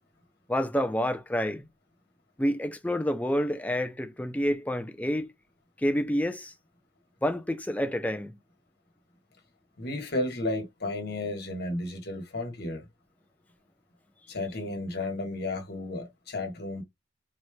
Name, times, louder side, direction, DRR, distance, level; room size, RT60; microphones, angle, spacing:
voice 1, 0.5-1.7 2.4-5.3 5.8-6.5 7.2-8.4, equal, 10° left, 0.5 m, -28 dB
voice 2, 9.8-12.9 14.3-16.8, left 2 dB, 55° left, 1.4 m, -33 dB
4.1 x 3.2 x 2.2 m
head